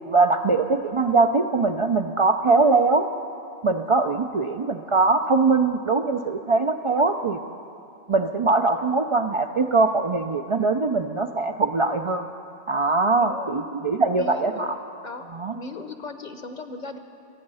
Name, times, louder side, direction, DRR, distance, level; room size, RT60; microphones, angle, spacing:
voice 1, 0.1-3.1 3.6-7.4 8.1-12.3 12.7-14.8 15.3-15.5, right 3 dB, 45° right, 5 dB, 0.4 m, -22 dB
voice 2, 13.2-13.6 14.1-14.7 15.0-15.3 15.5-17.0, left 3 dB, 45° left, 7 dB, 1.0 m, -37 dB
27.0 x 9.7 x 5.5 m, 2.7 s
omnidirectional pair, 1.0 m